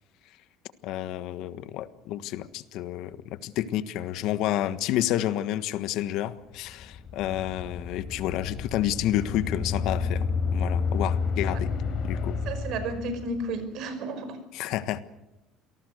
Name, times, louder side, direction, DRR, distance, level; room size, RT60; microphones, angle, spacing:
voice 1, 0.8-11.7 12.0-12.4 14.5-15.0, left 13 dB, 65° left, 13 dB, 1.4 m, -30 dB
sound 1, 6.6-13.5, left 5 dB, 50° left, 3.7 m, -30 dB
voice 2, 12.5-14.4, right 2 dB, 60° right, 10 dB, 5.2 m, -32 dB
27.5 x 19.0 x 6.6 m, 0.93 s
cardioid pair, 140°, 0 cm